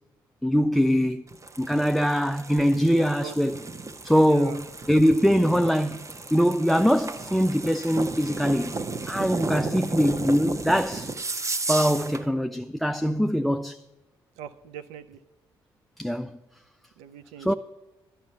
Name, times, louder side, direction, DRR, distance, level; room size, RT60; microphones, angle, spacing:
voice 1, 0.4-1.2 1.6-3.6 4.0-6.1 6.3-8.7 9.1-11.1 11.7-13.8 16.0-16.3 17.4-17.5, equal, ahead, 0.3 m, -22 dB
sound 1, 1.3-12.3, right 3 dB, 25° right, 0.8 m, -34 dB
voice 2, 4.3-4.6 14.4-15.2 17.0-17.5, right 8 dB, 65° right, 0.5 m, -41 dB
11.5 x 5.6 x 8.8 m
figure-of-eight pair, 40°, 12 cm